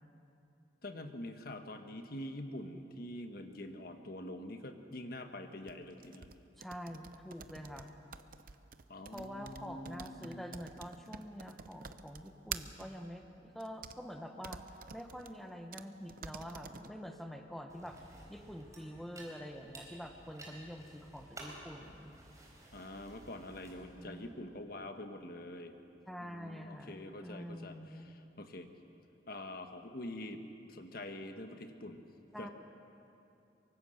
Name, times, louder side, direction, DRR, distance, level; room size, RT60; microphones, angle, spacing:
voice 1, 0.8-6.3 8.9-10.4 22.7-25.7 26.2-28.7 29.3-30.4 30.7-32.0 32.4-32.5, left 1 dB, 55° left, 6 dB, 1.4 m, -45 dB
sound 1, 5.7-12.9 13.6-14.0 14.4-15.3 15.7-15.8 16.1-16.9, right 7 dB, 50° right, 0.7 m, -47 dB
voice 2, 6.6-7.9 9.1-14.6 14.9-18.0 18.3-22.1 23.8-24.4 26.0-28.1 32.3-32.5, equal, ahead, 4 dB, 1.2 m, -46 dB
sound 2, 17.7-24.3, right 1 dB, 20° right, 4.4 m, -54 dB
24.0 x 23.5 x 6.6 m, 2.7 s
head